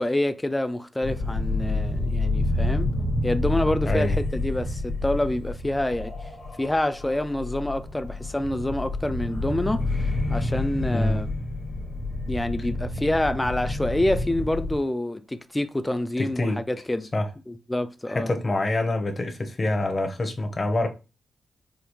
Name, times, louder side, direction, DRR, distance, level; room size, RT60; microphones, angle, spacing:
voice 1, 0.0-2.9 3.2-6.3 6.6-11.3 12.3-17.1 17.5-18.3, left 1 dB, 10° left, 0.3 m, -27 dB
sound 1, 1.0-14.8, left 2 dB, 55° left, 1.1 m, -28 dB
voice 2, 3.8-4.2 10.9-11.2 16.2-16.6 17.1-17.3 18.1-20.9, left 2 dB, 30° left, 0.8 m, -26 dB
5.0 x 2.3 x 3.0 m
cardioid pair, 115°, 0 cm